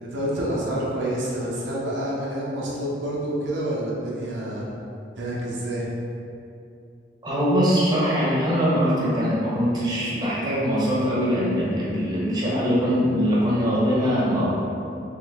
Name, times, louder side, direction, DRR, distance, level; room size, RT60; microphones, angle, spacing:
voice 1, 0.0-4.7 5.2-5.9, right 1 dB, 75° right, -5 dB, 0.7 m, -28 dB
voice 2, 7.2-14.5, equal, 20° right, -7 dB, 0.9 m, -22 dB
3.6 x 3.3 x 3.4 m, 2.6 s
head